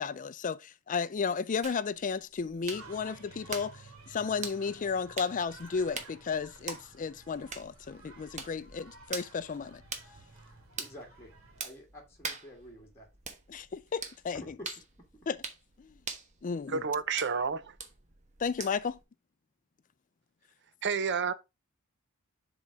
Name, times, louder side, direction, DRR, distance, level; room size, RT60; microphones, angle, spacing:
voice 1, 0.0-9.8 13.5-14.6 15.3-15.4 15.8-15.9 16.4-16.8 18.4-19.0, left 5 dB, 40° left, 0.4 m, -33 dB
sound 1, 1.6-19.0, right 5 dB, 35° right, 1.2 m, -45 dB
sound 2, 2.7-11.6, right 3 dB, 80° right, 2.4 m, -54 dB
voice 2, 10.8-13.1 14.3-14.5, equal, 10° left, 1.7 m, -50 dB
voice 3, 16.7-17.7 20.8-21.3, right 5 dB, 55° right, 0.7 m, -30 dB
7.3 x 4.0 x 4.6 m
head